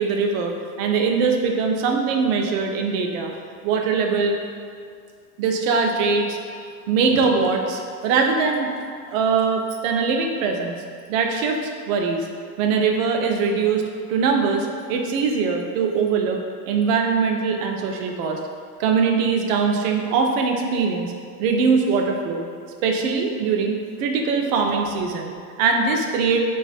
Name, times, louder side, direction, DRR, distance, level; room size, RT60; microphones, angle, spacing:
voice 1, 0.0-3.4 3.6-4.4 5.4-6.4 6.9-8.7 9.1-10.8 11.1-12.3 12.6-13.8 14.1-16.4 16.7-18.4 18.8-21.1 21.4-22.4 22.8-26.4, right 5 dB, 65° right, 3 dB, 0.5 m, -22 dB
3.1 x 2.4 x 2.4 m, 2.2 s
hypercardioid pair, 105°, 44 cm